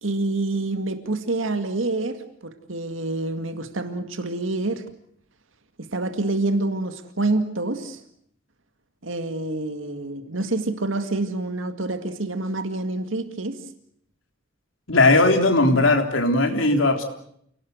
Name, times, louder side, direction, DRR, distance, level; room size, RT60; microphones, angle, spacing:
voice 1, 0.0-4.9 5.8-8.0 9.0-13.6, right 2 dB, 80° right, 8 dB, 2.1 m, -27 dB
voice 2, 14.9-17.0, left 2 dB, 85° left, 4 dB, 3.6 m, -18 dB
28.5 x 18.5 x 8.0 m, 0.69 s
head